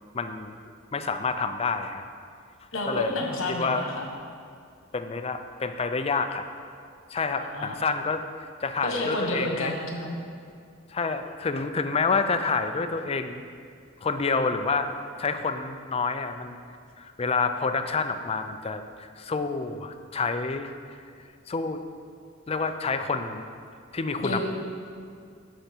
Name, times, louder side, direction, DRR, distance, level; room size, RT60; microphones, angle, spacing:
voice 1, 0.1-0.6 0.9-2.0 2.9-3.2 3.5-3.8 4.9-6.5 7.1-8.2 8.6-9.7 10.9-13.4 14.0-14.9 15.2-16.6 17.0-20.7 21.5-21.8 22.5-23.4 23.9-24.4, left 4 dB, 30° left, 8 dB, 0.5 m, -28 dB
voice 2, 2.7-4.1 7.3-7.8 8.8-10.2 24.2-24.4, left 1 dB, 70° left, 1 dB, 1.4 m, -30 dB
10.0 x 6.7 x 4.5 m, 2.3 s
head